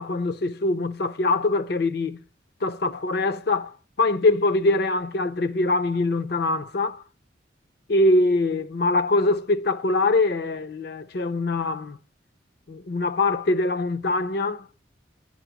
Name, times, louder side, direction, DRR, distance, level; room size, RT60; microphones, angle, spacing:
voice 1, 0.0-2.2 2.6-3.7 4.0-7.0 7.9-12.0 12.7-14.9, left 2 dB, 55° left, 0.6 m, -23 dB
9.8 x 4.0 x 5.9 m
head